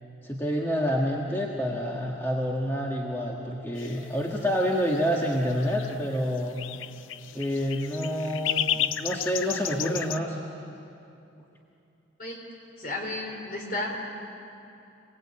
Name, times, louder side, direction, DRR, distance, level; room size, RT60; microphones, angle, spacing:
voice 1, 0.2-6.6 7.3-10.4, equal, 10° left, -2 dB, 1.5 m, -28 dB
sound 1, 3.8-10.2, left 10 dB, 80° left, 0.6 m, -33 dB
voice 2, 12.8-13.9, left 2 dB, 45° left, 1 dB, 4.0 m, -33 dB
27.0 x 18.5 x 8.7 m, 2.7 s
head